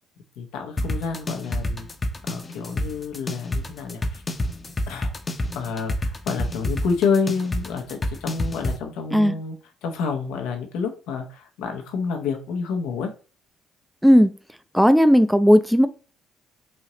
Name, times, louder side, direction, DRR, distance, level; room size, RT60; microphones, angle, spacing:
voice 1, 0.4-1.9 2.3-4.2 4.9-5.1 5.5-9.6 9.8-13.1, left 5 dB, 80° left, 4 dB, 0.8 m, -28 dB
sound 1, 0.8-8.8, left 1 dB, 30° left, 0.7 m, -28 dB
voice 2, 14.7-15.9, equal, ahead, 11 dB, 0.5 m, -15 dB
4.2 x 2.7 x 3.0 m, 0.37 s
hypercardioid pair, 55°, 0 cm